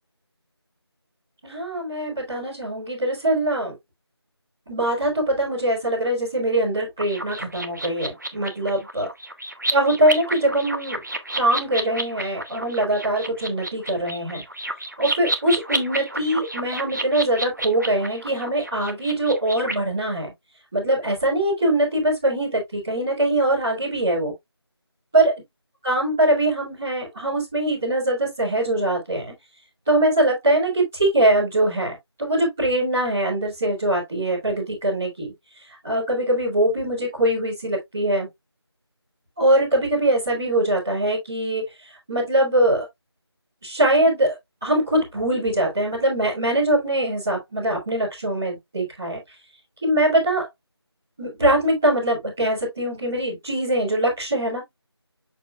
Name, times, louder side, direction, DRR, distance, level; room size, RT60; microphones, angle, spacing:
voice 1, 1.4-3.7 4.7-9.1 9.7-11.0 11.3-14.4 15.0-20.3 20.7-24.3 25.1-25.3 25.8-29.3 29.8-35.3 35.8-38.3 39.4-41.6 42.1-42.8 43.6-44.3 44.6-49.2 49.8-50.5 51.2-54.6, right 1 dB, 5° right, 1.6 m, -22 dB
sound 1, 7.0-19.7, right 1 dB, 45° right, 1.1 m, -31 dB
6.7 x 6.2 x 2.3 m
figure-of-eight pair, 180°, 14 cm